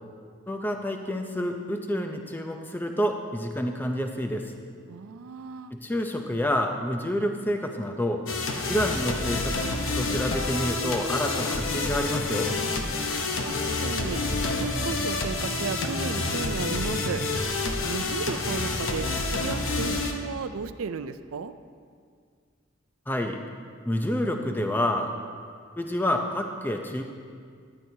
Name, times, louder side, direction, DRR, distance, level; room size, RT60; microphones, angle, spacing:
voice 1, 0.5-4.5 5.7-8.2 8.7-9.7 10.0-12.5 23.1-23.4 23.9-25.1 25.8-27.0, left 1 dB, 10° left, 4 dB, 0.5 m, -28 dB
voice 2, 4.9-5.7 13.5-14.2 14.6-17.2 17.8-21.5, right 5 dB, 85° right, 12 dB, 0.4 m, -34 dB
sound 1, 8.3-20.1, left 3 dB, 75° left, 1.0 m, -28 dB
13.0 x 12.0 x 2.8 m, 2.1 s
head